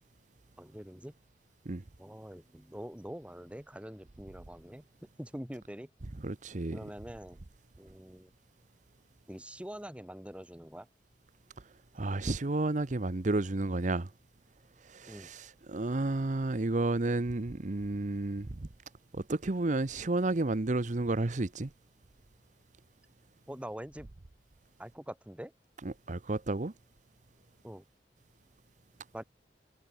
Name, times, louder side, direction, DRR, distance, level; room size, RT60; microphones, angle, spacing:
voice 1, 0.6-1.1 2.0-4.8 5.2-5.9 6.7-7.4 7.8-8.3 9.3-10.9 15.1-15.3 23.5-24.1 24.8-25.5 27.6-27.8 29.1-29.2, equal, 5° right, 1.4 m, -44 dB
voice 2, 6.2-6.8 11.9-14.1 14.8-18.7 19.1-21.7 25.8-26.7, right 2 dB, 45° right, 0.8 m, -31 dB
head